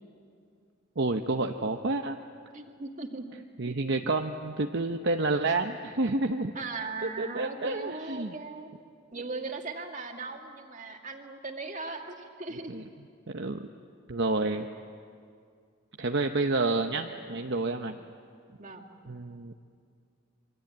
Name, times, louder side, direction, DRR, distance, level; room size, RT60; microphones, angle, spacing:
voice 1, 1.0-2.2 3.6-6.5 7.0-8.4 12.7-12.8 13.3-13.7 14.1-14.7 16.0-18.0 19.1-19.5, right 3 dB, 55° right, 4 dB, 0.9 m, -29 dB
voice 2, 2.5-3.2 6.5-8.7 9.1-12.8 16.9-17.1 18.6-18.9, right 3 dB, 35° right, 3 dB, 2.2 m, -38 dB
27.0 x 24.0 x 8.7 m, 2.3 s
head